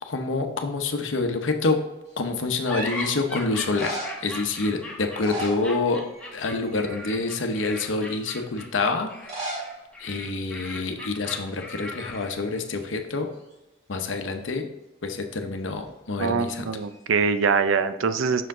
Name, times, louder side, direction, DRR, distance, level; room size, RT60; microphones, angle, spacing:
voice 1, 0.0-1.8 2.2-6.0 6.3-9.6 10.0-13.3 13.9-14.7 15.0-16.7, left 3 dB, 70° left, 5 dB, 0.8 m, -27 dB
sound 1, 2.1-2.6 3.5-4.3 5.0-6.2 6.5-6.9 7.5-7.6 9.1-9.7 10.0-10.1 10.3-10.4 11.1-11.4 11.6-12.8 16.8-17.4, right 2 dB, 35° right, 2.0 m, -36 dB
sound 2, 2.6-12.5, left 1 dB, 5° left, 1.3 m, -38 dB
voice 2, 16.2-18.5, right 5 dB, 85° right, 11 dB, 0.5 m, -23 dB
6.3 x 4.6 x 3.6 m, 0.99 s
head